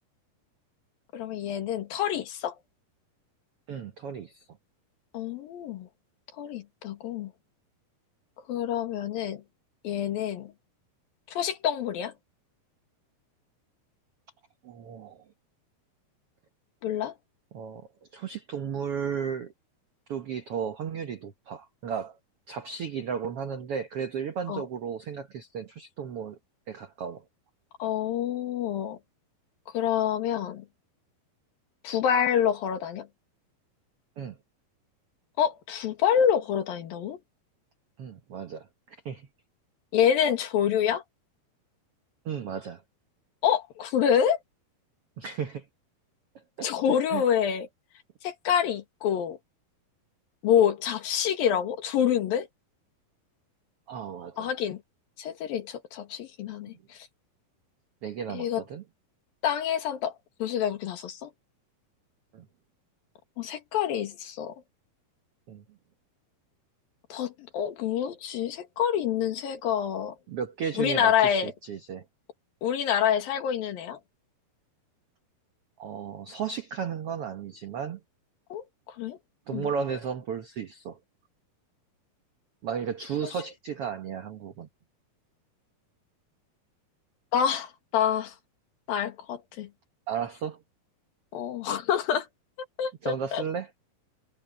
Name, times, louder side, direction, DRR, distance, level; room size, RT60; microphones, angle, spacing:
voice 1, 1.1-2.5 5.1-5.9 6.4-7.3 8.5-9.4 9.8-10.5 11.3-12.1 16.8-17.1 24.5-24.6 27.8-29.0 29.7-30.7 31.8-33.1 35.4-37.2 39.9-41.0 43.4-44.4 46.6-47.7 48.2-49.4 50.4-52.5 54.4-54.8 55.2-57.0 58.3-58.6 59.4-60.2 60.4-61.3 63.4-64.6 67.1-70.2 70.8-71.5 72.6-74.0 78.5-78.6 79.0-79.2 79.5-79.7 87.3-88.4 88.9-89.7 91.3-92.3 92.8-93.4, left 9 dB, 70° left, 3.6 m, -27 dB
voice 2, 3.7-4.4 14.6-15.2 17.5-19.5 20.1-22.2 22.5-26.4 26.7-27.2 34.2-34.4 38.0-39.3 42.2-42.8 45.2-45.6 46.6-47.2 53.9-54.5 58.0-58.8 62.3-62.5 65.5-65.6 70.3-72.0 75.8-78.0 79.5-81.0 82.6-84.7 90.1-90.6 93.0-93.7, right 7 dB, 90° right, 1.2 m, -34 dB
omnidirectional pair, 4.5 m